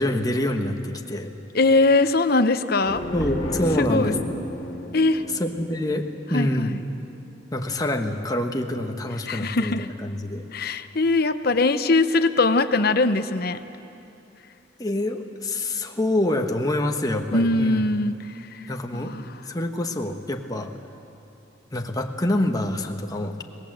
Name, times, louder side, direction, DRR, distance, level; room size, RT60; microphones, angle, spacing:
voice 1, 0.0-1.3 3.1-4.4 5.4-6.7 7.5-10.4 14.8-17.8 18.7-19.1 19.5-20.7 21.7-23.4, left 1 dB, 20° left, 3 dB, 1.3 m, -26 dB
voice 2, 1.5-3.0 3.8-4.1 4.9-5.2 6.3-6.8 9.3-9.9 10.5-13.6 17.3-19.3, left 3 dB, 55° left, 10 dB, 0.9 m, -21 dB
sound 1, 2.8-6.5, equal, 40° left, 2.7 m, -31 dB
26.5 x 19.0 x 7.8 m, 2.8 s
head